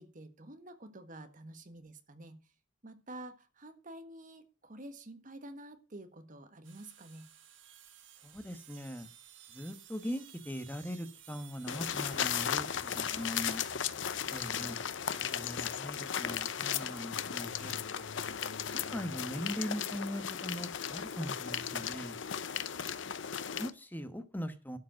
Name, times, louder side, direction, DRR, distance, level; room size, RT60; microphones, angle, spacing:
voice 1, 0.0-2.4 2.8-7.3 14.4-14.8 23.0-23.4, right 1 dB, 45° right, 9 dB, 1.4 m, -49 dB
sound 1, 6.6-14.5, right 10 dB, 80° right, 1.5 m, -55 dB
voice 2, 8.2-9.1 9.5-13.7 14.3-14.8 15.3-18.1 18.7-22.2 23.5-24.8, equal, 10° left, 9 dB, 1.1 m, -40 dB
sound 2, 11.7-23.7, left 8 dB, 75° left, 0.7 m, -36 dB
12.0 x 5.2 x 7.6 m, 0.33 s
head